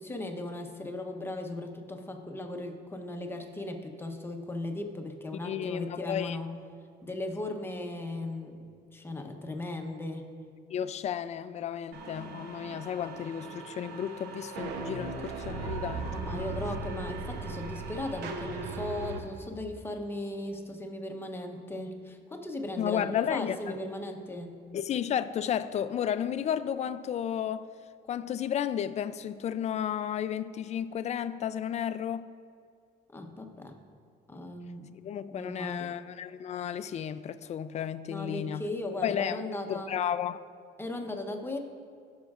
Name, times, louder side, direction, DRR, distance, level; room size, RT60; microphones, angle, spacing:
voice 1, 0.0-6.6 7.0-10.3 15.4-15.6 16.1-24.6 33.1-33.8 34.3-34.9 35.3-35.9 38.1-39.9 40.8-41.6, left 1 dB, 15° left, 0.8 m, -37 dB
voice 2, 5.4-6.4 10.7-16.1 16.4-16.5 22.8-23.8 24.7-27.7 28.1-32.3 35.0-38.6 39.0-39.4 39.7-40.4, left 9 dB, 40° left, 0.4 m, -33 dB
sound 1, 11.9-19.2, right 3 dB, 80° right, 0.9 m, -38 dB
15.5 x 6.3 x 2.5 m
cardioid pair, 110°, 17 cm